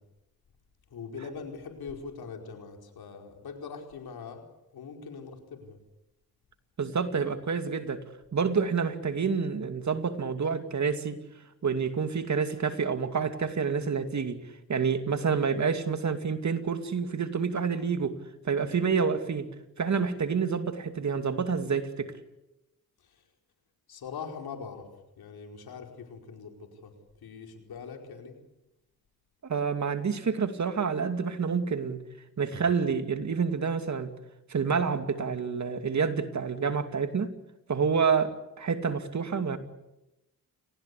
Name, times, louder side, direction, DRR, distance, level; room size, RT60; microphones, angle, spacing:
voice 1, 0.9-4.4 4.7-5.8 23.9-24.8 25.2-26.9 27.2-28.4, left 5 dB, 75° left, 4 dB, 4.8 m, -42 dB
voice 2, 6.8-8.0 8.3-11.2 11.6-14.4 14.7-18.1 18.4-19.5 19.8-22.1 29.4-32.0 32.4-34.1 34.5-37.3 37.7-39.6, right 5 dB, 50° right, 9 dB, 2.5 m, -28 dB
28.5 x 19.5 x 8.4 m, 0.92 s
cardioid pair, 85°, 37 cm